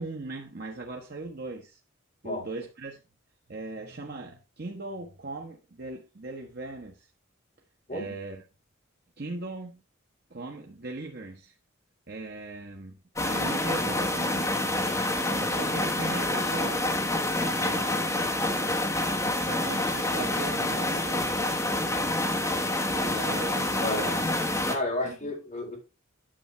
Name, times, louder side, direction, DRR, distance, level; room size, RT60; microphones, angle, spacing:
voice 1, 0.0-1.8 2.2-3.0 3.5-7.1 7.9-8.4 9.2-9.8 10.3-11.5 12.1-13.0 13.2-14.5 15.2-16.9 17.3-18.0 19.4-22.2 22.6-24.2 25.0-25.2, right 3 dB, 55° right, 1.1 m, -39 dB
sound 1, 13.2-24.8, left 1 dB, 15° left, 1.3 m, -27 dB
voice 2, 23.7-24.1 24.7-25.8, left 2 dB, 40° left, 3.8 m, -32 dB
10.0 x 7.1 x 3.2 m
head